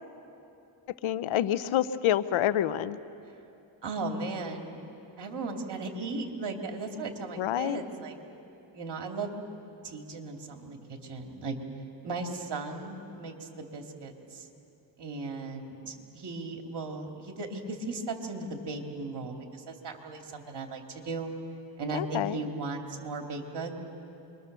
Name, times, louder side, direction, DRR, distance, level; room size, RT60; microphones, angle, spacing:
voice 1, 1.0-3.0 7.4-7.8 21.9-22.4, left 11 dB, 80° left, 14 dB, 0.9 m, -27 dB
voice 2, 3.8-4.8 5.2-8.2 8.7-9.4 9.8-11.6 12.0-14.5 15.0-21.3 21.8-23.7, right 3 dB, 55° right, 3 dB, 2.9 m, -37 dB
26.0 x 22.5 x 6.8 m, 2.8 s
cardioid pair, 80°, 48 cm